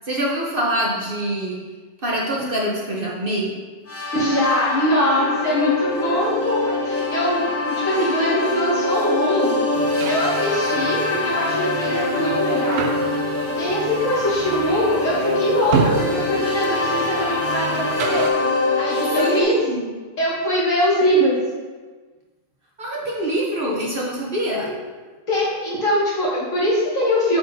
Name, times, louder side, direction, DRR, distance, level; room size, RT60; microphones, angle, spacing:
voice 1, 0.0-1.6 2.0-3.6 19.2-19.9 22.8-24.7, right 1 dB, 45° right, -3 dB, 1.1 m, -24 dB
sound 1, 3.9-19.4, left 2 dB, 25° left, 0.3 m, -24 dB
voice 2, 4.1-9.6 10.1-12.8 13.5-18.3 18.8-19.6 20.2-21.4 25.3-27.4, equal, 65° left, -7 dB, 2.4 m, -22 dB
sound 2, 9.7-18.3, right 5 dB, 60° right, 0.8 m, -30 dB
8.0 x 6.2 x 2.7 m, 1.4 s
omnidirectional pair, 1.5 m